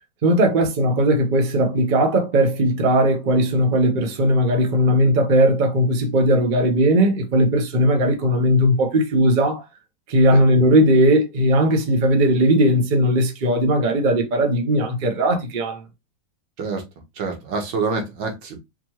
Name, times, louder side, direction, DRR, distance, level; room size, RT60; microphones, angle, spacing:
voice 1, 0.2-9.6 10.1-15.8, equal, 50° right, 0.5 m, -18 dB
voice 2, 17.2-18.6, right 4 dB, 75° right, 1.9 m, -26 dB
4.2 x 3.0 x 3.0 m
omnidirectional pair, 2.2 m